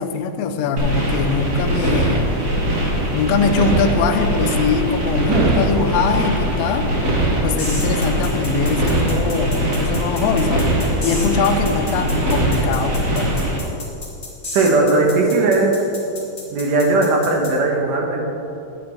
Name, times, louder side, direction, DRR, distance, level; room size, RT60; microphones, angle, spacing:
voice 1, 0.0-2.3 3.1-6.9 7.4-10.7 11.0-13.4, left 5 dB, 85° left, 5 dB, 1.4 m, -22 dB
sound 1, 0.8-13.6, right 1 dB, 45° right, 1.0 m, -21 dB
voice 2, 5.2-5.6 14.5-15.7 16.5-18.2, right 3 dB, 80° right, 0 dB, 2.8 m, -17 dB
sound 2, 7.6-17.5, left 2 dB, 15° left, 1.4 m, -33 dB
10.5 x 8.4 x 4.5 m, 2.8 s
omnidirectional pair, 3.7 m